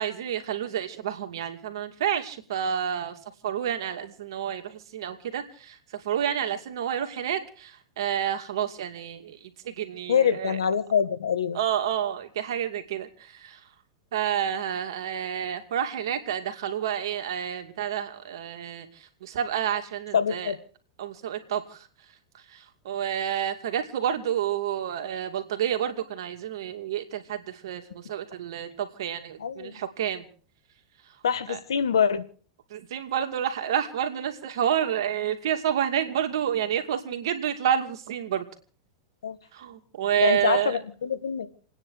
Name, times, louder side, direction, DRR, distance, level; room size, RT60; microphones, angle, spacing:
voice 1, 0.0-3.2 3.4-10.6 11.5-13.6 14.1-20.5 21.0-21.9 22.5-30.3 31.5-31.6 32.7-38.5 39.5-40.8, right 9 dB, 70° right, 2.5 m, -29 dB
voice 2, 10.1-11.6 20.1-20.6 29.4-29.8 31.2-32.2 39.2-39.4 40.2-41.5, left 7 dB, 85° left, 1.4 m, -25 dB
29.0 x 9.8 x 4.9 m
hypercardioid pair, 115°, 3 cm